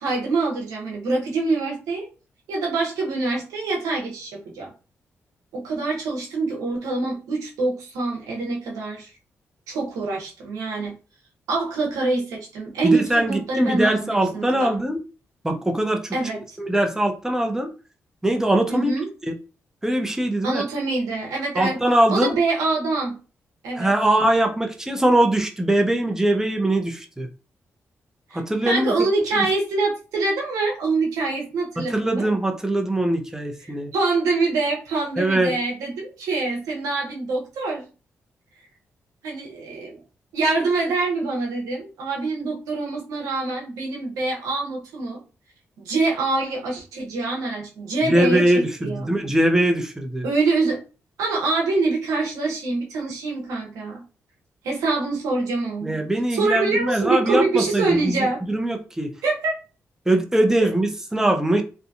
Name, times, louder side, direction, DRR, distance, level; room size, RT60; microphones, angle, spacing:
voice 1, 0.0-2.1 2.5-4.7 5.5-9.1 9.7-10.9 11.5-14.7 16.1-16.6 18.7-19.1 20.4-21.8 22.1-23.1 23.6-23.9 28.3-32.3 33.9-37.9 39.2-40.0 40.3-45.2 45.8-49.2 50.2-50.8 51.2-54.0 54.6-56.0 56.3-58.4 59.2-59.6, right 3 dB, 90° right, -1 dB, 0.8 m, -25 dB
voice 2, 12.8-15.0 15.4-16.2 16.6-17.7 18.2-18.9 19.8-20.6 21.5-22.3 23.8-27.3 28.3-28.9 29.3-29.5 31.8-33.9 35.2-35.5 48.1-50.2 55.8-59.1 60.1-61.6, right 1 dB, 10° right, 3 dB, 0.6 m, -21 dB
2.7 x 2.2 x 2.6 m, 0.34 s
supercardioid pair, 50°, 6 cm